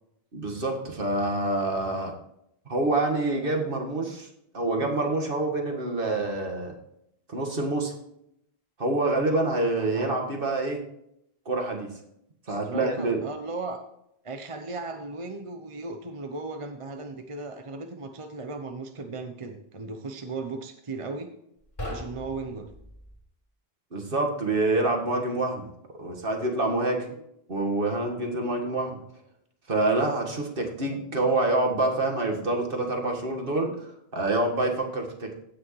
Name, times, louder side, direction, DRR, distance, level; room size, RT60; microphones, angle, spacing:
voice 1, 0.3-2.1 2.7-4.3 4.5-6.7 7.3-7.9 8.8-10.8 11.5-11.9 12.5-13.2 23.9-25.7 26.0-27.0 27.5-29.0 29.7-35.3, right 2 dB, 60° right, 2 dB, 1.9 m, -26 dB
voice 2, 12.5-13.8 14.2-21.3 21.9-22.7 27.1-27.2 31.2-31.3, right 3 dB, 35° right, 6 dB, 0.8 m, -36 dB
sound 1, 21.6-23.2, left 1 dB, 30° left, 2.9 m, -39 dB
16.5 x 6.3 x 3.1 m, 0.76 s
omnidirectional pair, 1.0 m